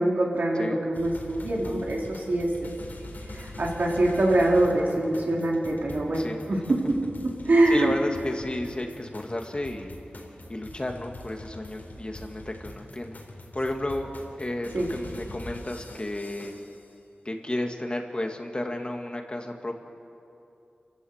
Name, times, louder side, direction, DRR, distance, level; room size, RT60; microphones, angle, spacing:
voice 1, 0.0-2.5 3.3-7.0 7.2-7.9 14.7-14.9, right 1 dB, 70° right, -3 dB, 4.4 m, -24 dB
sound 1, 0.9-16.9, left 1 dB, 65° left, 4.0 m, -43 dB
voice 2, 7.7-10.0 10.5-13.2 13.5-14.1 14.4-16.5 17.3-19.8, left 1 dB, 30° left, 3 dB, 2.1 m, -32 dB
28.0 x 15.0 x 8.1 m, 2.7 s
wide cardioid pair, 80°, 3 cm